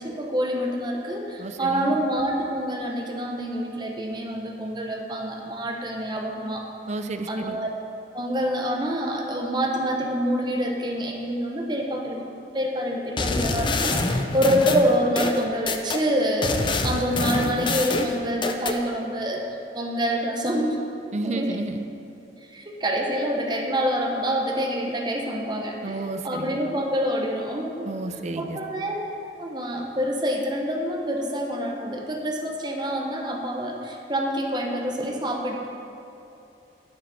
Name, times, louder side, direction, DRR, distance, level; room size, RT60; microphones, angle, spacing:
voice 1, 0.0-6.7 7.3-7.7 8.1-12.2 12.5-19.4 19.7-20.8 21.2-21.6 22.5-27.9 28.4-35.7, equal, 25° right, 1 dB, 1.0 m, -26 dB
voice 2, 1.4-2.0 6.9-7.6 21.1-21.8 25.8-26.5 27.8-28.6, right 2 dB, 40° right, 8 dB, 0.5 m, -31 dB
sound 1, 13.2-16.0 16.4-18.8, left 3 dB, 25° left, 0.5 m, -26 dB
9.6 x 9.5 x 4.2 m, 2.8 s
head